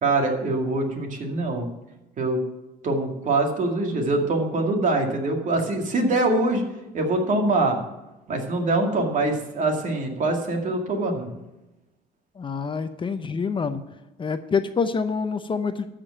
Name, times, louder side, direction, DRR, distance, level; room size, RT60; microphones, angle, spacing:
voice 1, 0.0-1.7 2.2-2.4 2.8-6.7 6.9-7.8 8.3-11.3, right 2 dB, 50° right, 3 dB, 2.4 m, -24 dB
voice 2, 12.4-13.8 14.2-15.9, left 5 dB, 30° left, 10 dB, 0.7 m, -26 dB
13.0 x 5.2 x 8.6 m, 0.99 s
cardioid pair, 110°, 17 cm